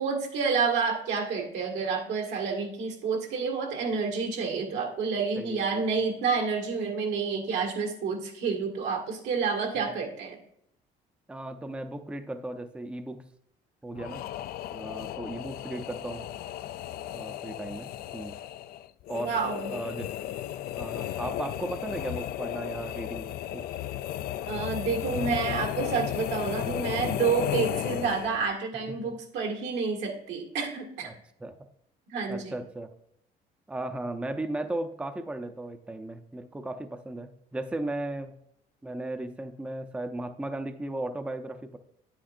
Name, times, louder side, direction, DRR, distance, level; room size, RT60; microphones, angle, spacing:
voice 1, 0.0-10.4 19.2-19.7 24.5-31.1 32.1-32.5, right 5 dB, 85° right, 1 dB, 1.9 m, -29 dB
voice 2, 5.4-5.8 9.8-9.9 11.3-13.2 13.8-14.3 14.7-16.3 17.1-18.4 19.1-19.3 19.7-20.1 20.8-23.8 26.6-26.9 28.9-29.1 31.0-31.1 31.4-31.5 32.3-32.9 33.7-38.3 38.8-41.8, right 2 dB, 5° right, 8 dB, 0.5 m, -36 dB
sound 1, 14.0-28.5, left 12 dB, 65° left, 0.4 m, -34 dB
9.2 x 8.8 x 2.5 m, 0.74 s
cardioid pair, 110°, 17 cm